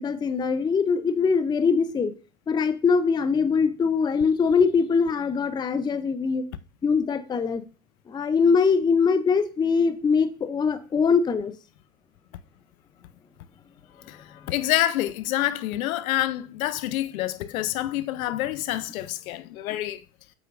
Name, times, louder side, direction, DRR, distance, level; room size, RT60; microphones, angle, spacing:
voice 1, 0.0-2.1 2.5-6.4 6.8-7.6 8.1-11.5, left 5 dB, 10° left, 0.5 m, -22 dB
voice 2, 14.1-20.0, left 14 dB, 75° left, 0.7 m, -27 dB
8.1 x 5.7 x 2.5 m
hypercardioid pair, 95°, 42 cm